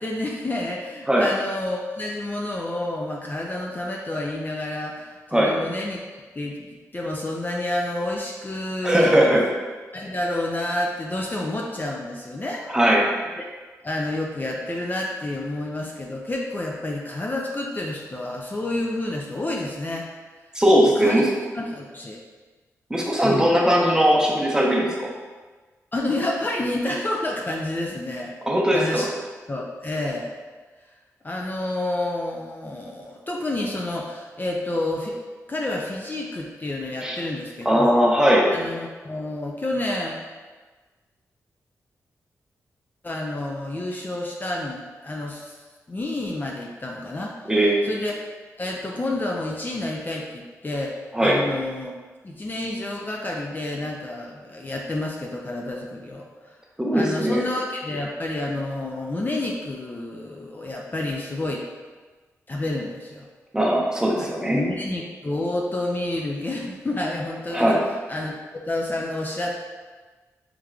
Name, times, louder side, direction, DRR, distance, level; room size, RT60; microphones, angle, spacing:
voice 1, 0.0-6.0 6.4-6.6 6.9-9.4 9.9-12.6 13.8-20.1 21.0-21.2 21.5-22.2 23.2-23.5 25.9-28.3 28.7-29.1 29.5-30.3 31.2-35.2 35.5-38.0 38.5-40.2 43.0-45.5 45.9-47.3 47.8-48.2 48.6-51.9 52.2-56.5 56.9-61.6 62.5-63.2 64.5-67.8 68.1-68.3 68.7-69.6, left 1 dB, 30° left, -1 dB, 0.5 m, -29 dB
voice 2, 8.8-9.5 12.7-13.0 20.5-21.3 22.9-25.1 28.5-29.1 37.0-37.2 37.6-38.5 47.5-47.8 51.1-51.4 56.8-57.4 63.5-64.6 67.5-67.8, equal, 10° right, -2 dB, 0.8 m, -19 dB
3.5 x 3.2 x 2.3 m, 1.3 s
cardioid pair, 50°, 6 cm